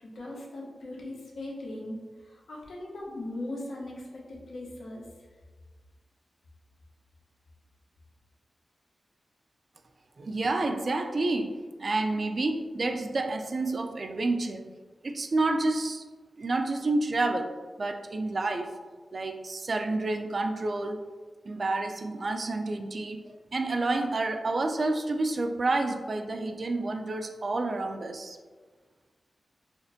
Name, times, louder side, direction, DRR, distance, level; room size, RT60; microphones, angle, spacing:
voice 1, 0.0-5.1, left 1 dB, 80° left, -4 dB, 0.8 m, -39 dB
voice 2, 10.2-14.7 15.0-16.0 16.4-17.5 17.8-18.8 19.1-21.1 21.5-23.2 23.5-28.4, right 2 dB, 45° right, 6 dB, 0.3 m, -29 dB
4.2 x 2.5 x 2.6 m, 1.4 s
wide cardioid pair, 115°, 0 cm